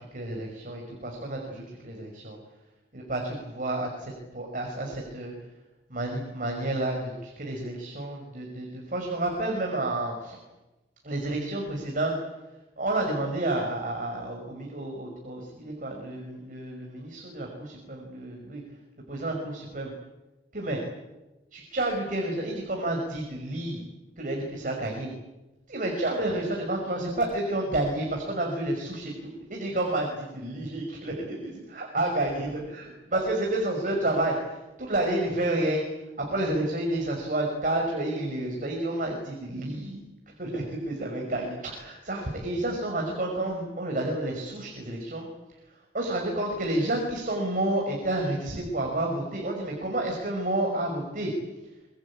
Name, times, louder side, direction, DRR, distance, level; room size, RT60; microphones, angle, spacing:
voice 1, 0.1-2.4 2.9-5.3 5.9-10.4 11.0-12.2 12.8-18.6 19.1-19.9 20.5-20.8 21.5-23.8 24.2-25.1 25.7-35.9 36.2-40.1 40.4-45.3 45.7-51.3, right 1 dB, 50° right, 1 dB, 5.6 m, -30 dB
26.0 x 23.0 x 8.6 m, 1.0 s
head